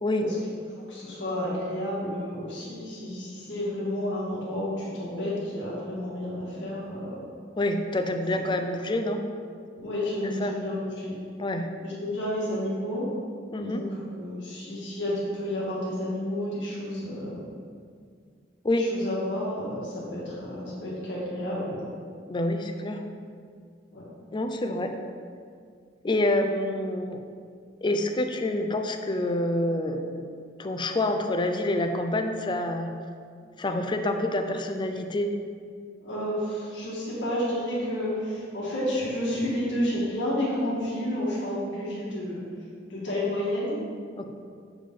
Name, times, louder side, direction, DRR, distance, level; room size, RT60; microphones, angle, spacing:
voice 1, 0.7-7.2 9.8-11.1 11.8-13.1 13.6-17.5 18.8-21.8 23.9-24.0 36.0-42.4 42.9-43.8, left 1 dB, 80° left, -6 dB, 1.8 m, -31 dB
voice 2, 7.6-9.2 10.2-10.5 11.4-11.7 13.5-13.8 18.6-18.9 22.3-23.0 24.3-24.9 26.0-27.2 27.8-30.3 30.6-32.9 33.6-35.4 44.2-44.3, left 1 dB, 25° left, 6 dB, 0.4 m, -27 dB
7.2 x 5.1 x 3.7 m, 2.1 s
head